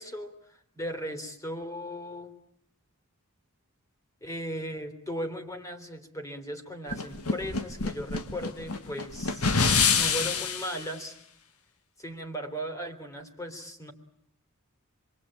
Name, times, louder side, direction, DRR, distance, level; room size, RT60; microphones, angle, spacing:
voice 1, 0.0-2.3 4.2-9.7 9.9-11.2 12.0-13.9, equal, 15° left, 6 dB, 3.2 m, -37 dB
sound 1, 6.9-10.8, left 5 dB, 80° left, 1.6 m, -27 dB
27.0 x 22.5 x 8.9 m, 0.69 s
head